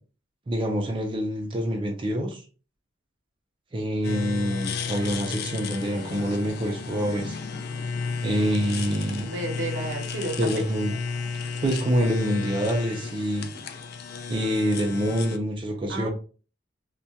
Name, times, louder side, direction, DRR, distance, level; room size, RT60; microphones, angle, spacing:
voice 1, 0.5-2.4 3.7-7.4 8.2-9.3 10.4-10.9 11.6-13.5 14.3-16.1, equal, 25° right, 1 dB, 0.4 m, -26 dB
sound 1, 4.0-15.4, left 5 dB, 55° left, 0.3 m, -33 dB
voice 2, 9.2-10.6 11.6-11.7 15.9-16.1, right 1 dB, 85° right, 2 dB, 0.7 m, -32 dB
2.2 x 2.2 x 2.7 m, 0.35 s
head